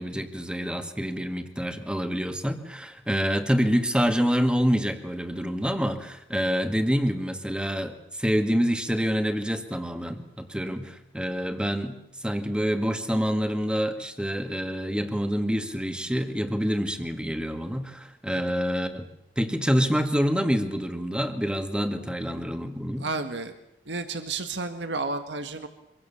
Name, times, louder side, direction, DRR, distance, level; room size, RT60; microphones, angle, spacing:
voice 1, 0.0-19.1 19.4-23.1, equal, 5° right, 7 dB, 2.1 m, -27 dB
voice 2, 23.0-23.5 23.9-25.7, right 3 dB, 75° right, 8 dB, 1.9 m, -31 dB
25.5 x 24.0 x 7.2 m, 0.77 s
head